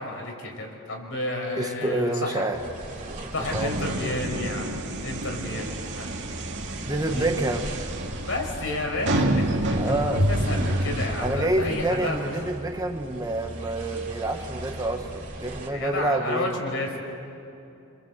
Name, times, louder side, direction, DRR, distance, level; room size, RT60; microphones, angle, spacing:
voice 1, 0.0-2.5 3.3-6.2 7.1-7.3 8.2-12.3 15.7-17.0, left 2 dB, 65° left, 2 dB, 5.4 m, -31 dB
voice 2, 1.6-2.6 3.2-3.7 6.8-7.7 9.7-10.2 11.2-16.6, right 1 dB, 15° right, 5 dB, 1.2 m, -28 dB
sound 1, 2.5-15.7, right 1 dB, 35° right, 3.5 m, -38 dB
sound 2, 3.5-11.7, right 1 dB, 60° right, 2.2 m, -28 dB
27.5 x 26.5 x 8.1 m, 2.8 s
head